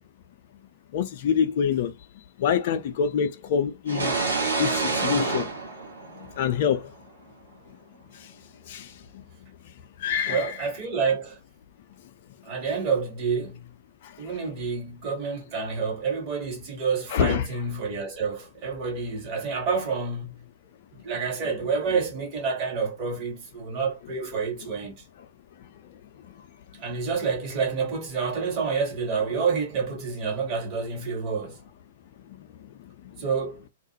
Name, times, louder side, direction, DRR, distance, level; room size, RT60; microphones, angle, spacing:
voice 1, 0.9-1.9 2.4-4.1 4.6-5.5 6.4-6.9 8.2-8.3 8.7-9.2 10.0-10.5 17.1-17.4, left 7 dB, 50° left, 0.3 m, -25 dB
sound 1, 3.9-6.7, right 3 dB, 75° right, 0.9 m, -27 dB
voice 2, 10.2-11.4 12.4-13.7 14.2-20.5 20.9-25.0 26.8-31.6 33.2-33.6, right 5 dB, 35° right, 1.0 m, -28 dB
2.3 x 2.0 x 2.8 m
figure-of-eight pair, 105°, 0 cm